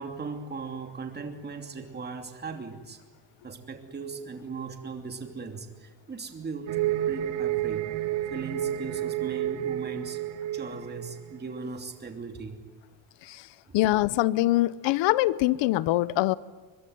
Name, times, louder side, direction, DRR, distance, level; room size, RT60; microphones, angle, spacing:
voice 1, 0.0-3.0 3.4-7.9 8.3-10.2 10.5-12.6 13.3-13.4 13.7-13.8, right 4 dB, 20° right, 2.9 m, -38 dB
sound 1, 6.7-11.7, right 12 dB, 75° right, 2.1 m, -30 dB
voice 2, 13.7-16.4, left 16 dB, 65° left, 1.0 m, -24 dB
23.5 x 23.0 x 9.5 m
cardioid pair, 150°, 47 cm